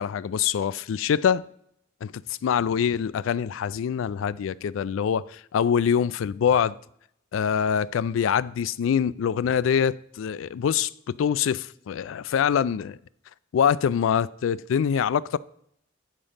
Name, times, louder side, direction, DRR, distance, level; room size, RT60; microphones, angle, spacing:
voice 1, 0.0-1.4 2.0-2.1 2.4-6.8 7.3-13.0 13.5-15.4, left 8 dB, 80° left, 0.3 m, -24 dB
8.9 x 5.1 x 5.5 m
head